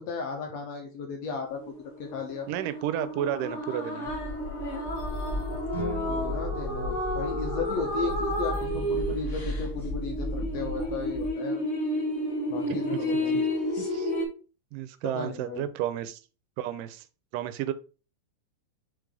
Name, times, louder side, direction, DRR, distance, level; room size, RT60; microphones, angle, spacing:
voice 1, 0.0-2.5 6.1-11.6 12.5-13.4 15.0-15.6, left 5 dB, 70° left, 3 dB, 1.8 m, -35 dB
sound 1, 1.5-14.2, left 1 dB, 50° left, 0.8 m, -31 dB
voice 2, 2.5-4.1 12.7-13.1 13.3-13.4 13.8-14.1 14.7-16.2 16.6-17.1 17.3-17.7, right 11 dB, 90° right, 12 dB, 2.2 m, -32 dB
sound 2, 4.1-11.3, equal, 5° right, 2.5 m, -35 dB
sound 3, 5.7-7.9, left 1 dB, 35° right, 0.8 m, -39 dB
5.1 x 4.7 x 3.8 m, 0.34 s
omnidirectional pair, 3.8 m